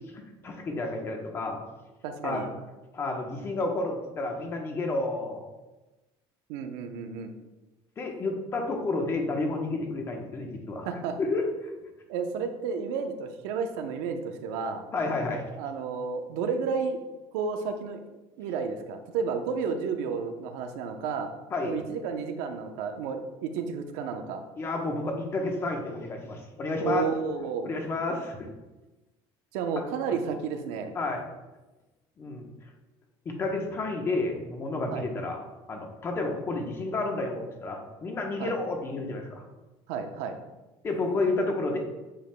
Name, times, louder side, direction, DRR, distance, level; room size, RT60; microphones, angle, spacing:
voice 1, 0.0-1.6 2.2-2.4 2.9-5.4 8.0-10.9 11.2-11.7 14.9-15.5 21.5-21.7 24.6-27.1 27.6-28.5 30.9-31.2 32.2-32.5 33.2-35.4 35.7-39.4 40.8-41.8, left 2 dB, 25° left, 2 dB, 1.0 m, -30 dB
voice 2, 2.0-2.5 6.5-7.3 10.8-11.2 12.1-14.9 15.6-17.0 17.3-18.0 18.4-21.3 21.6-24.4 26.8-27.7 29.5-30.9 34.9-35.1 38.4-38.5 39.9-40.4, right 5 dB, 90° right, 5 dB, 0.9 m, -31 dB
9.0 x 7.0 x 2.3 m, 1.1 s
cardioid pair, 170°, 11 cm